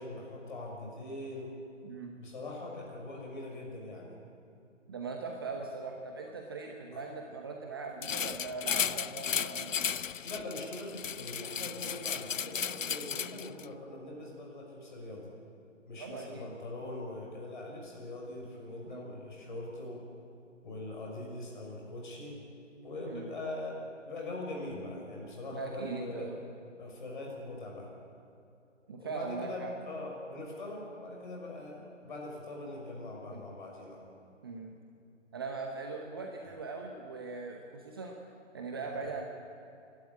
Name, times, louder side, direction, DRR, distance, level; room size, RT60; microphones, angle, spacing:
voice 1, 0.0-1.5 2.1-4.1 6.9-7.0 10.2-15.3 15.9-20.0 20.6-22.4 22.8-23.8 24.0-26.3 26.8-27.9 29.0-34.0 36.4-36.5, left 2 dB, 40° left, -1 dB, 6.1 m, -42 dB
voice 2, 4.9-9.8 16.0-16.5 18.8-19.1 23.1-23.3 25.5-26.4 28.9-29.7 33.3-33.4 34.4-34.7 35.3-38.2 38.5-39.3, right 4 dB, 20° right, 2 dB, 0.9 m, -40 dB
sound 1, 8.0-13.7, left 7 dB, 80° left, 0.6 m, -35 dB
28.0 x 12.5 x 8.7 m, 2.5 s
figure-of-eight pair, 150°, 38 cm